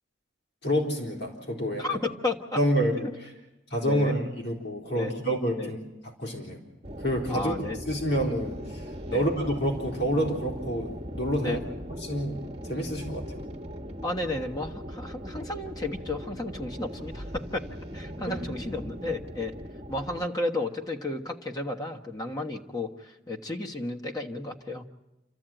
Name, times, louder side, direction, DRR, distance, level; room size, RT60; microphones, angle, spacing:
voice 1, 0.6-1.9 2.6-2.9 3.7-5.8 6.2-6.6 7.0-7.5 7.9-8.8 9.1-11.6 12.0-13.4 18.3-18.4, equal, 60° left, -1 dB, 4.0 m, -28 dB
voice 2, 1.8-2.6 2.9-3.1 3.8-4.1 4.9-5.1 5.6-5.7 7.3-7.8 9.1-9.3 11.4-11.6 14.0-17.7 17.9-19.5 19.9-24.9, left 2 dB, 20° left, 1 dB, 1.3 m, -33 dB
sound 1, 6.8-20.3, equal, 30° right, 1.5 m, -39 dB
28.0 x 13.5 x 9.1 m, 0.96 s
head